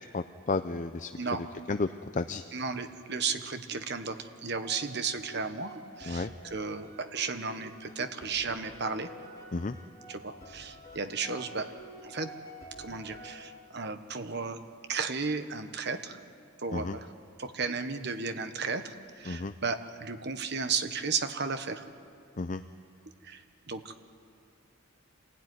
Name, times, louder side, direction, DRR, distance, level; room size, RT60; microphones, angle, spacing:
voice 1, 0.1-1.1 1.7-1.9 2.1-2.4 6.0-6.3 9.5-9.8 16.7-17.0 19.3-19.5 22.4-22.6, left 3 dB, 40° left, 9 dB, 0.5 m, -32 dB
voice 2, 2.5-9.1 10.1-11.7 12.0-12.3 12.8-14.6 14.9-16.2 16.6-17.1 17.4-21.8 23.2-24.0, right 5 dB, 55° right, 8 dB, 1.3 m, -34 dB
sound 1, 4.6-13.9, equal, 15° left, 5.4 m, -49 dB
27.0 x 16.5 x 9.8 m, 2.4 s
head